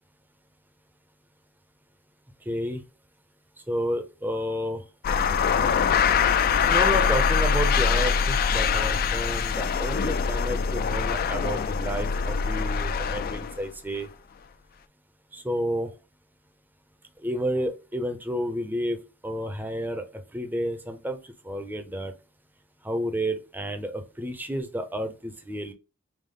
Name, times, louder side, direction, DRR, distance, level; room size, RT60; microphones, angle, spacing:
voice 1, 2.5-2.8 3.7-4.8 6.6-14.1 15.3-15.9 17.2-19.0 19.2-20.0 20.3-21.2 21.4-22.1 22.8-25.7, equal, 10° right, 6 dB, 0.5 m, -30 dB
sound 1, 5.0-13.7, left 6 dB, 40° left, 0.3 m, -23 dB
5.2 x 2.0 x 3.6 m, 0.30 s
head